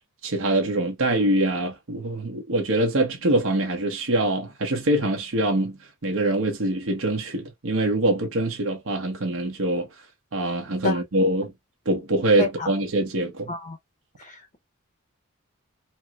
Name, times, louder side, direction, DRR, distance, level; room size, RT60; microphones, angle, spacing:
voice 1, 0.2-5.8 6.0-9.9 10.3-11.5 11.9-13.5, right 1 dB, 65° right, 0.9 m, -24 dB
voice 2, 12.4-12.7 13.5-13.8 14.2-14.6, left 3 dB, 30° left, 0.6 m, -29 dB
4.4 x 2.1 x 2.2 m
head